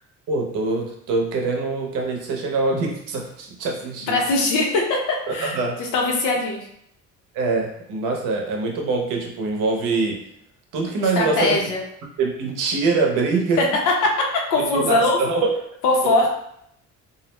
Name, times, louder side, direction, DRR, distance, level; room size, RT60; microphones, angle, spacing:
voice 1, 0.3-4.2 5.4-5.8 7.3-10.2 10.7-11.6 12.2-13.6 14.5-15.5 16.0-16.3, right 3 dB, 85° right, 1 dB, 0.7 m, -24 dB
voice 2, 4.1-5.0 5.3-6.6 11.0-11.8 13.6-13.7 14.0-14.1 14.5-15.2 15.8-16.3, left 2 dB, 85° left, 0 dB, 0.7 m, -21 dB
2.4 x 2.0 x 3.0 m, 0.73 s
cardioid pair, 175°, 31 cm